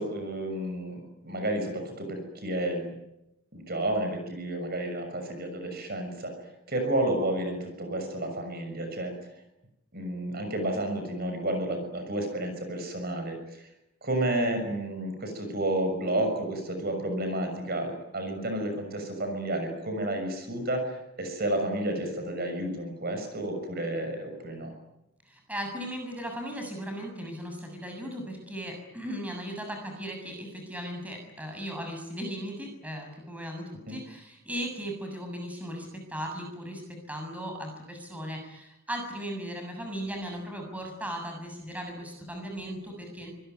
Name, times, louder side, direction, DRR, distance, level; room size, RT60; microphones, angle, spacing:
voice 1, 0.0-2.9 3.5-9.3 9.9-13.7 14.0-24.7 33.9-34.0, right 1 dB, 45° right, 5 dB, 6.5 m, -31 dB
voice 2, 25.3-43.3, equal, 5° right, 3 dB, 7.1 m, -37 dB
25.5 x 21.5 x 9.5 m, 0.89 s
head